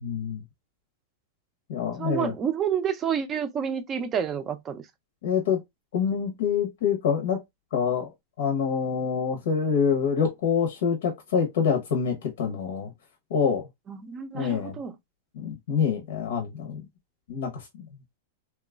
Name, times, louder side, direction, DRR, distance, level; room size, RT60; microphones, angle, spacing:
voice 1, 0.0-0.4 1.7-2.3 5.2-5.6 5.9-7.4 7.7-8.1 8.4-12.9 13.3-13.7 14.3-14.8 15.3-16.9 17.3-17.8, left 6 dB, 75° left, 0.8 m, -26 dB
voice 2, 2.0-4.9 13.9-14.9, right 8 dB, 25° right, 0.5 m, -29 dB
2.9 x 2.3 x 2.2 m
hypercardioid pair, 140°, 0 cm